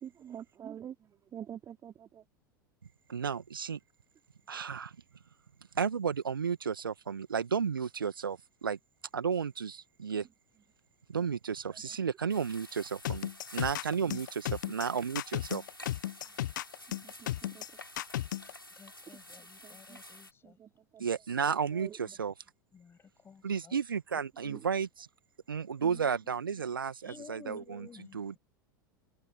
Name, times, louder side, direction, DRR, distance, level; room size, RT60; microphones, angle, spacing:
voice 1, 0.0-2.2 11.7-11.8 16.9-17.6 19.1-19.2 19.6-20.0 20.4-21.0 21.7-22.0 24.4-24.7, right 9 dB, 25° right, 3.2 m, -47 dB
voice 2, 3.1-3.8 4.5-5.0 5.7-8.8 9.1-10.3 11.1-15.6 21.0-22.3 23.4-25.1 25.5-28.4, right 6 dB, 75° right, 2.0 m, -33 dB
sound 1, 12.3-20.3, left 1 dB, 90° left, 5.5 m, -51 dB
sound 2, 13.0-18.5, left 14 dB, 60° left, 0.9 m, -34 dB
voice 3, 18.8-20.6 22.7-23.0 23.2-23.8 25.8-26.1 27.0-28.4, left 6 dB, 20° left, 7.3 m, -52 dB
figure-of-eight pair, 85°, 12 cm